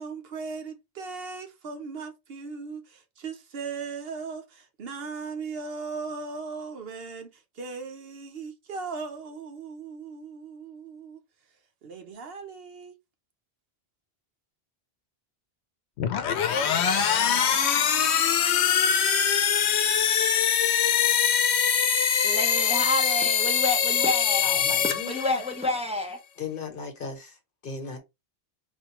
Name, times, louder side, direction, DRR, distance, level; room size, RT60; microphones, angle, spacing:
voice 1, 0.0-11.2 11.8-12.9, right 4 dB, 65° right, 0.9 m, -38 dB
sound 1, 16.0-25.7, left 8 dB, 90° left, 0.9 m, -23 dB
voice 2, 22.2-24.6 25.1-26.2, left 2 dB, 5° right, 0.6 m, -29 dB
voice 3, 24.4-25.4 26.4-28.0, left 5 dB, 55° left, 1.1 m, -37 dB
4.3 x 2.2 x 2.9 m
omnidirectional pair, 1.1 m